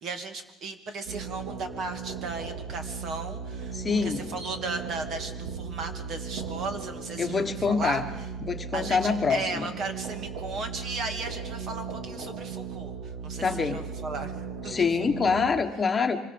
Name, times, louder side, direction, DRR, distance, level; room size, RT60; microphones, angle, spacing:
voice 1, 0.0-8.0 8.7-15.4, right 3 dB, 50° right, 7 dB, 2.5 m, -36 dB
sound 1, 1.1-15.5, right 6 dB, 90° right, 2.6 m, -37 dB
voice 2, 3.7-4.2 7.2-8.0 8.5-9.7 13.4-13.8 14.7-16.2, left 5 dB, 20° left, 5 dB, 1.4 m, -25 dB
26.0 x 20.5 x 7.0 m, 0.98 s
cardioid pair, 150°, 0 cm